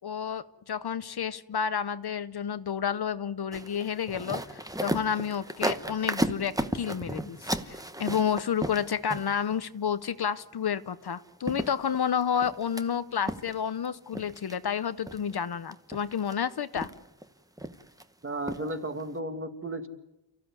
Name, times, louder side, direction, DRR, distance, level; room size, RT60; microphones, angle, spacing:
voice 1, 0.0-16.9, left 7 dB, 55° left, 13 dB, 0.8 m, -30 dB
sound 1, 3.5-9.5 11.1-11.2 11.5-12.8 13.3-13.9 14.1-14.5 15.1-15.4 15.7-16.3 16.8-17.2 17.6-18.0 18.5-18.7 19.0-19.1, right 1 dB, 10° right, 1.0 m, -34 dB
voice 2, 18.2-19.9, right 1 dB, 25° right, 6 dB, 2.0 m, -34 dB
30.0 x 15.0 x 9.6 m, 0.95 s
wide cardioid pair, 165°, 46 cm